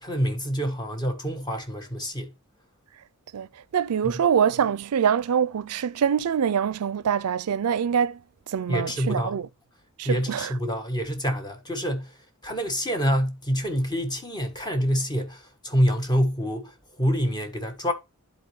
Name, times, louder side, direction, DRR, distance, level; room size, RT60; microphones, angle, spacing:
voice 1, 0.0-2.3 4.0-4.1 8.7-9.4 10.0-12.1 12.4-17.9, equal, 20° left, 1.2 m, -26 dB
voice 2, 3.7-8.2 8.5-9.5 10.0-10.5, right 7 dB, 80° right, 0.4 m, -24 dB
11.0 x 4.1 x 3.1 m
head